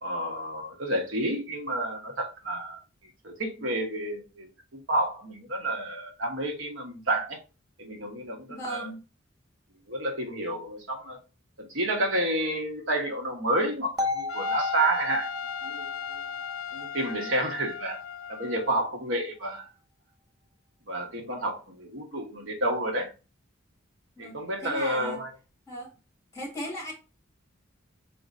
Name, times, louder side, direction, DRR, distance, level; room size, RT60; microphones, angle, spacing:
voice 1, 0.0-2.8 3.2-4.5 4.7-7.4 7.8-8.9 9.9-11.2 11.6-15.3 15.6-16.3 16.7-18.0 18.3-19.7 20.9-23.1 24.2-25.3, right 1 dB, 65° right, 1.2 m, -30 dB
voice 2, 8.5-9.0 24.2-25.2 25.7-25.9 26.3-26.9, equal, 15° left, 1.8 m, -37 dB
sound 1, 14.0-18.0, left 3 dB, 20° right, 0.4 m, -34 dB
Trumpet, 14.3-18.9, left 7 dB, 70° left, 0.4 m, -37 dB
5.0 x 4.1 x 2.6 m
head